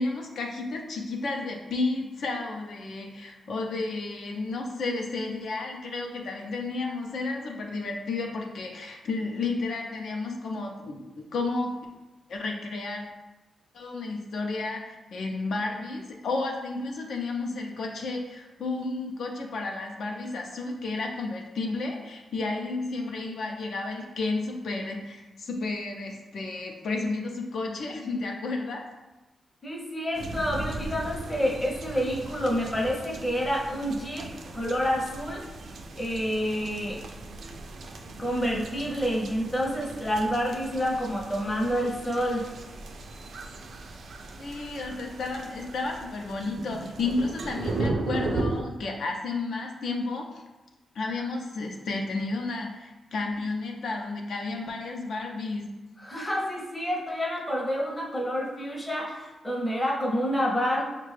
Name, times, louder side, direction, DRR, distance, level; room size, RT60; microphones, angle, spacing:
voice 1, 0.0-11.7 12.3-13.1 13.7-28.8 44.4-50.4 50.9-55.7, left 3 dB, 70° left, 1 dB, 0.5 m, -32 dB
voice 2, 29.6-35.4 36.0-37.0 38.2-42.5 56.0-60.8, equal, 15° left, -2 dB, 0.6 m, -28 dB
sound 1, 30.1-48.6, right 2 dB, 60° right, 0.3 m, -37 dB
5.8 x 2.2 x 3.2 m, 1.1 s
wide cardioid pair, 170°, 0 cm